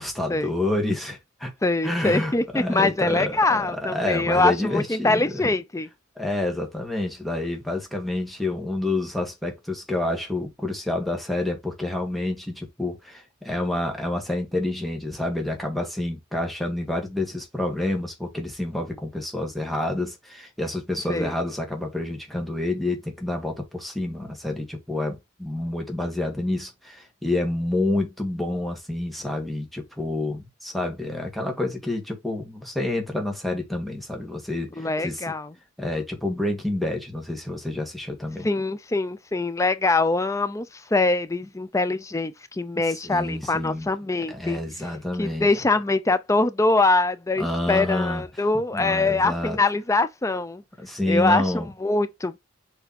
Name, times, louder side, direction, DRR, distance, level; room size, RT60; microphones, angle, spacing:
voice 1, 0.0-1.5 1.8-5.4 6.2-35.2 35.8-38.5 43.0-43.9 44.3-45.5 47.4-48.2 48.7-49.6 50.8-51.7, left 1 dB, ahead, 1.9 m, -28 dB
voice 2, 1.6-5.9 21.1-21.3 34.8-35.5 38.4-40.7 40.9-44.6 45.2-50.6 51.1-52.4, left 2 dB, 15° left, 0.5 m, -23 dB
6.8 x 3.5 x 4.2 m
head